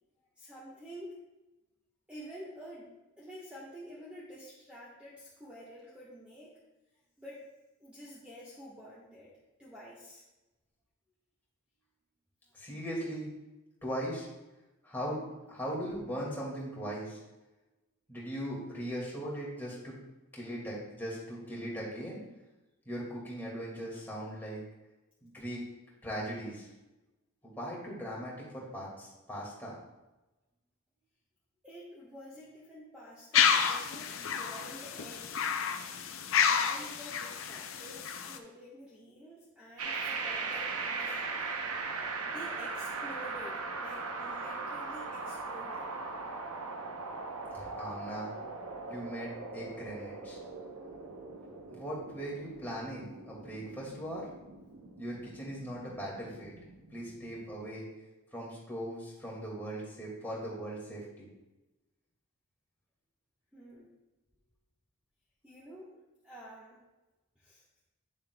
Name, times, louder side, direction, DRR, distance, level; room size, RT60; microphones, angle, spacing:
voice 1, 0.4-1.2 2.1-6.5 7.2-7.4 7.8-9.3 9.6-10.2 31.6-35.5 36.4-41.4 42.2-45.9 63.5-63.9 65.4-66.8 67.4-67.6, equal, 5° right, -8 dB, 1.2 m, -49 dB
voice 2, 12.5-13.3 13.8-14.3 14.8-17.2 18.1-19.9 20.3-22.2 22.9-24.6 25.2-25.6 26.0-26.7 27.6-29.8 47.5-48.3 48.9-50.4 51.7-54.3 55.0-56.6 56.9-57.9 58.3-61.3, equal, 10° left, -5 dB, 2.0 m, -39 dB
sound 1, 33.3-38.4, left 7 dB, 60° left, 0.5 m, -30 dB
sound 2, 39.8-57.7, right 4 dB, 85° right, 0.8 m, -40 dB
9.3 x 6.9 x 2.2 m, 1.0 s
head